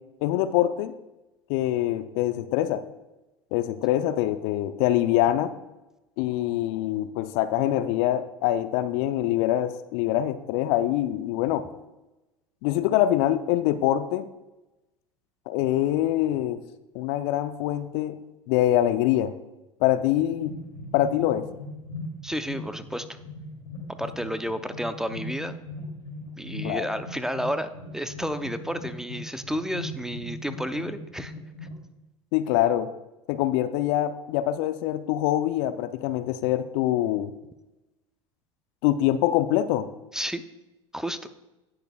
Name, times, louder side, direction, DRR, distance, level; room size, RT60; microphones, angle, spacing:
voice 1, 0.2-0.9 1.5-2.8 3.5-5.5 6.2-11.6 12.6-14.3 15.5-16.6 16.9-18.2 18.5-19.3 19.8-20.5 20.9-21.5 26.6-26.9 32.3-32.9 33.3-37.3 38.8-39.9, left 13 dB, 60° left, 12 dB, 0.6 m, -24 dB
sound 1, 20.3-31.8, left 2 dB, 80° left, 2.9 m, -39 dB
voice 2, 22.2-23.2 24.0-25.6 26.4-31.3 40.1-40.4 40.9-41.2, equal, 5° right, 10 dB, 0.7 m, -31 dB
18.0 x 6.6 x 2.4 m, 1.0 s
hypercardioid pair, 75°, 16 cm